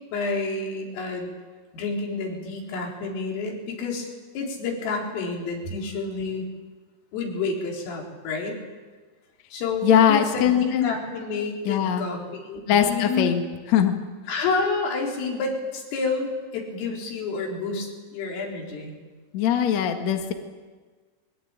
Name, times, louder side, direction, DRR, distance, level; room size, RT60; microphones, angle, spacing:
voice 1, 0.1-1.3 1.7-4.1 4.3-6.5 7.1-8.6 9.5-13.3 14.3-18.9, left 4 dB, 80° left, 0 dB, 6.5 m, -29 dB
voice 2, 9.8-10.9 11.7-12.1 12.7-13.4 13.7-13.9 19.3-20.3, left 9 dB, 55° left, 5 dB, 1.9 m, -21 dB
22.0 x 21.0 x 8.9 m, 1.4 s
omnidirectional pair, 5.8 m